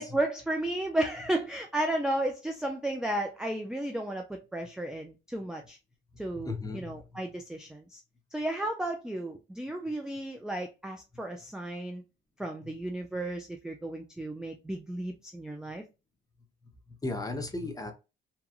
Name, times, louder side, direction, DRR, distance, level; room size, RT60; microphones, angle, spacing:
voice 1, 0.0-5.8 6.2-8.0 8.3-12.0 12.4-15.8, right 1 dB, 5° right, 0.4 m, -33 dB
voice 2, 6.1-7.2 12.6-12.8 16.9-17.9, left 2 dB, 20° left, 0.7 m, -37 dB
2.9 x 2.3 x 2.3 m
cardioid pair, 90°, 20 cm